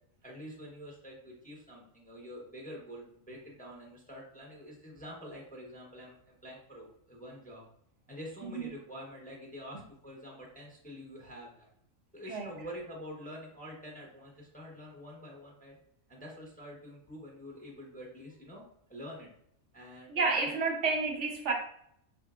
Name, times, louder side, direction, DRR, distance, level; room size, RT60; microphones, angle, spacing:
voice 1, 0.2-7.6 8.1-11.7 12.1-15.8 16.1-19.3 19.7-20.5, equal, 10° left, -2 dB, 0.7 m, -47 dB
voice 2, 20.1-21.5, right 4 dB, 65° right, 1 dB, 1.0 m, -30 dB
4.5 x 3.6 x 2.4 m, 0.71 s
omnidirectional pair, 1.4 m